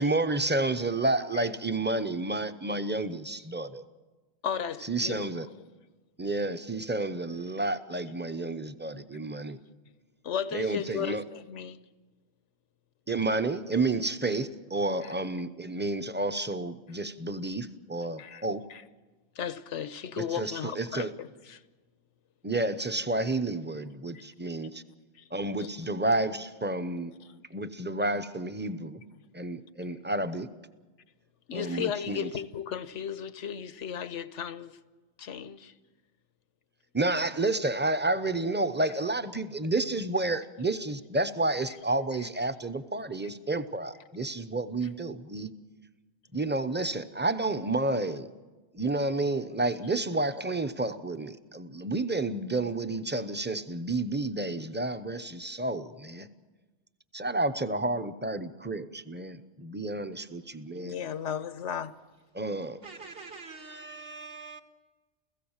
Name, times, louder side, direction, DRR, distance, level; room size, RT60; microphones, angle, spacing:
voice 1, 0.0-3.8 4.8-5.5 6.2-9.6 10.5-11.2 13.1-18.6 20.2-21.1 22.4-24.8 25.3-27.1 27.5-29.0 29.3-30.5 31.5-32.3 36.9-45.5 46.3-48.3 48.7-56.3 57.1-60.9 62.3-62.8, right 2 dB, 10° right, 0.7 m, -30 dB
voice 2, 4.4-5.3 10.2-11.8 15.0-15.1 18.2-18.8 19.3-21.6 24.1-24.2 25.1-25.2 25.6-25.7 27.2-27.4 31.5-34.8 35.2-35.7 60.7-61.9, left 8 dB, 90° left, 1.2 m, -35 dB
voice 3, 62.8-64.6, right 4 dB, 55° right, 1.8 m, -44 dB
29.0 x 16.5 x 7.3 m
omnidirectional pair, 1.2 m